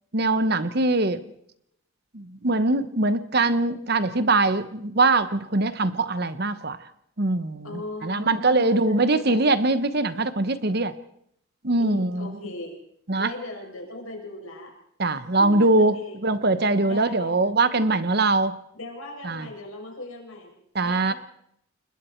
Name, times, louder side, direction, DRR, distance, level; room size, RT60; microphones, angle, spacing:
voice 1, 0.1-1.2 2.1-6.8 7.2-10.9 11.6-12.3 13.1-13.3 15.0-15.9 16.2-18.6 19.2-19.5 20.7-21.1, right 2 dB, 45° right, 13 dB, 1.0 m, -22 dB
voice 2, 7.6-9.5 11.8-12.8 13.2-14.7 15.1-16.2 16.8-17.5 18.7-20.5 20.8-21.1, left 2 dB, 75° left, 2 dB, 6.3 m, -39 dB
28.5 x 21.5 x 4.5 m, 0.71 s
head